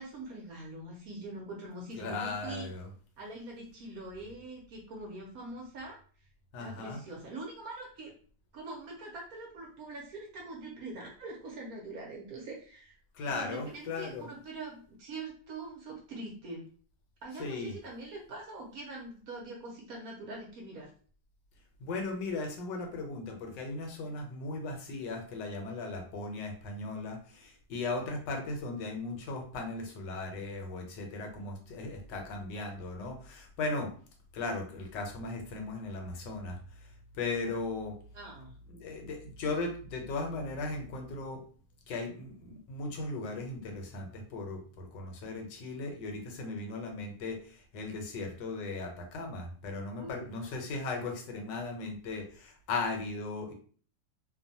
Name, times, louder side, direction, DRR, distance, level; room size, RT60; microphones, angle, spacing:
voice 1, 0.0-2.7 3.2-6.0 6.6-8.1 8.5-13.0 13.2-16.6 17.2-20.9 38.1-38.5 50.0-50.3, right 2 dB, 65° right, -1 dB, 1.0 m, -43 dB
voice 2, 2.0-2.9 6.5-7.0 13.1-14.2 17.4-17.7 21.8-33.9 34.3-36.6 37.1-37.9 38.7-41.4 41.9-53.5, left 3 dB, 80° left, 3 dB, 1.3 m, -37 dB
2.9 x 2.1 x 2.6 m, 0.43 s
omnidirectional pair, 2.0 m